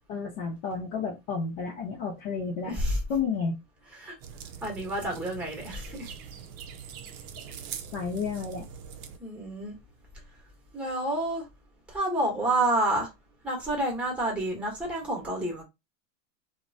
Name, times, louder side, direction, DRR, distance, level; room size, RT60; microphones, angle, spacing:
voice 1, 0.1-2.7 3.1-3.5 7.5-7.6 7.9-8.6, left 5 dB, 50° left, 0.8 m, -31 dB
voice 2, 2.6-3.0 3.9-4.1 4.6-6.1 9.2-9.7 10.7-11.5 11.9-13.1 13.4-15.6, right 1 dB, 5° right, 1.0 m, -29 dB
sound 1, 4.2-9.2, right 7 dB, 45° right, 0.5 m, -43 dB
3.0 x 2.2 x 2.6 m
supercardioid pair, 130°, 40 cm